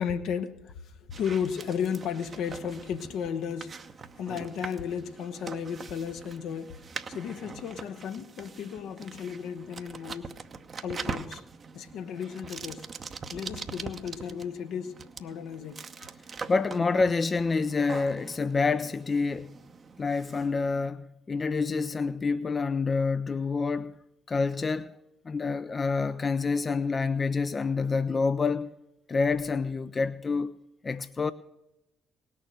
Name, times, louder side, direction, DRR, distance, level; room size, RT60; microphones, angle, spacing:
voice 1, 0.0-3.8 4.2-6.8 7.1-10.3 10.8-11.4 11.7-12.9 13.3-15.8, left 7 dB, 65° left, 0.8 m, -34 dB
large book search, 1.1-20.9, right 5 dB, 45° right, 0.8 m, -43 dB
voice 2, 16.5-19.5 20.0-24.0 24.3-24.9 25.3-28.7 29.1-30.6 30.8-31.3, left 4 dB, 35° left, 0.5 m, -27 dB
18.5 x 6.9 x 6.5 m
figure-of-eight pair, 45°, 0 cm